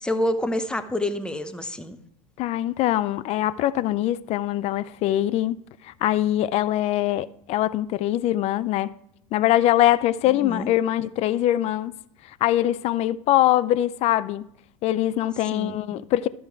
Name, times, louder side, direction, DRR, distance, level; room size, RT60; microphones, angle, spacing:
voice 1, 0.0-2.0 10.3-10.7 15.5-15.8, left 1 dB, 5° left, 0.7 m, -27 dB
voice 2, 2.4-5.6 5.8-8.9 9.3-11.9 12.4-14.4 14.8-16.3, left 13 dB, 35° left, 0.4 m, -23 dB
13.0 x 4.7 x 4.6 m
figure-of-eight pair, 80°, 19 cm